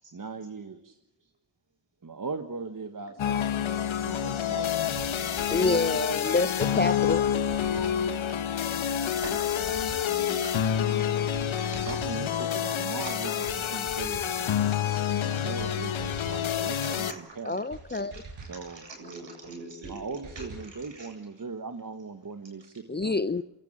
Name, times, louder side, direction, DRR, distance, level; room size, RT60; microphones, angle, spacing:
voice 1, 0.1-1.0 2.0-5.8 6.1-6.8 9.0-9.1 10.1-10.6 11.7-14.8 15.2-17.6 18.5-18.9 19.9-23.2, right 4 dB, 40° right, 1.6 m, -40 dB
sound 1, 3.2-17.1, left 9 dB, 70° left, 1.1 m, -28 dB
sound 2, 4.6-4.7 5.0-5.1 5.4-5.9 6.7-6.8 7.1-7.2 7.5-8.0 8.8-8.9 9.2-9.3 9.6-10.1 10.9-11.0 11.3-11.5 11.7-12.2 13.1-13.2 13.5-13.6 13.9-14.4 15.2-15.3 15.6-15.7 16.0-16.5 17.3-17.4 17.7-17.8 18.1-18.6 19.4-19.5 19.8-20.0 20.2-20.7, right 4 dB, 80° right, 6.1 m, -44 dB
voice 2, 5.5-7.2 17.4-18.2 22.9-23.4, left 3 dB, 20° left, 0.7 m, -27 dB
voice 3, 10.1-10.5 11.3-12.0 12.6-12.7 13.0-13.1 14.9-15.1 16.0-16.4 16.7-21.1, right 2 dB, 60° right, 7.9 m, -45 dB
27.5 x 13.5 x 8.7 m
cardioid pair, 40°, 49 cm